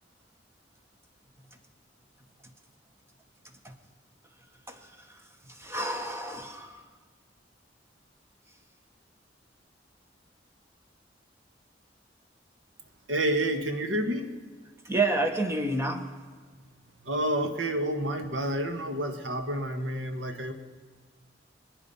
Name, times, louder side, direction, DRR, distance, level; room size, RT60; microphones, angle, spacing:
voice 1, 4.7-5.1 5.5-6.8 14.8-16.0, right 2 dB, 15° right, 5 dB, 1.4 m, -29 dB
voice 2, 13.1-14.3 17.0-20.5, right 1 dB, 80° right, 6 dB, 1.6 m, -29 dB
25.0 x 9.8 x 5.7 m, 1.5 s
head